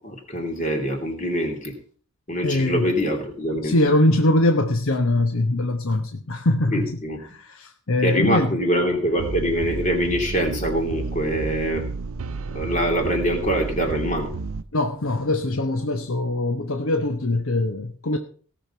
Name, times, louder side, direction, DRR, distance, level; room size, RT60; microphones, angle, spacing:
voice 1, 0.0-1.7 2.3-3.7 6.7-7.2 8.0-11.8 12.5-14.3, equal, 35° left, 3 dB, 3.0 m, -24 dB
voice 2, 2.4-2.9 3.6-7.0 7.3-8.5 14.7-18.2, left 1 dB, 85° left, 6 dB, 1.0 m, -22 dB
sound 1, 9.2-14.6, right 4 dB, 85° right, 0.6 m, -31 dB
17.5 x 6.7 x 5.5 m, 0.44 s
head